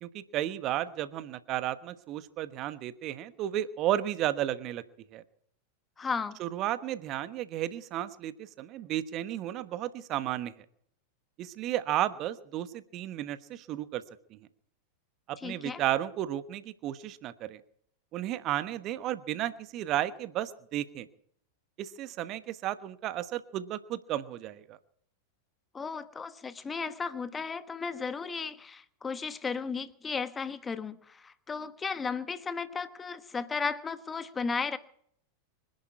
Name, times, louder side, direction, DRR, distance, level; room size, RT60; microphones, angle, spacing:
voice 1, 0.0-4.8 5.1-5.2 6.4-10.5 11.4-14.0 14.3-14.4 15.3-17.6 18.1-21.1 21.8-24.8, right 13 dB, 35° right, 13 dB, 1.2 m, -33 dB
voice 2, 6.0-6.4 15.4-15.8 25.7-34.8, left 5 dB, 15° left, 13 dB, 1.2 m, -35 dB
25.0 x 11.0 x 4.8 m, 0.66 s
figure-of-eight pair, 90°, 0 cm